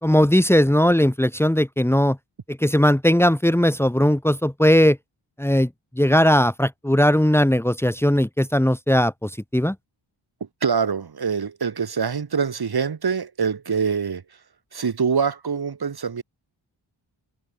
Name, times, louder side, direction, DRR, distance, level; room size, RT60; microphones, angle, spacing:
voice 1, 0.0-2.2 2.5-5.0 5.4-5.7 6.0-9.7, equal, 5° left, 2.8 m, -18 dB
voice 2, 10.6-14.2 14.7-16.2, right 6 dB, 50° right, 5.8 m, -24 dB
wide cardioid pair, 155°, 47 cm